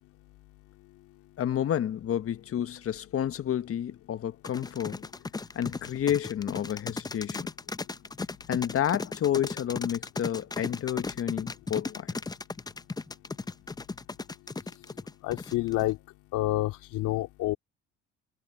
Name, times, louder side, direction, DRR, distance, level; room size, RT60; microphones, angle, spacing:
voice 1, 1.4-5.1 5.5-7.5 8.5-12.1, left 10 dB, 45° left, 1.3 m, -30 dB
sound 1, 4.4-15.9, left 3 dB, 15° left, 0.6 m, -36 dB
voice 2, 15.2-16.0 16.3-17.6, left 17 dB, 75° left, 2.5 m, -28 dB
supercardioid pair, 85°, 31 cm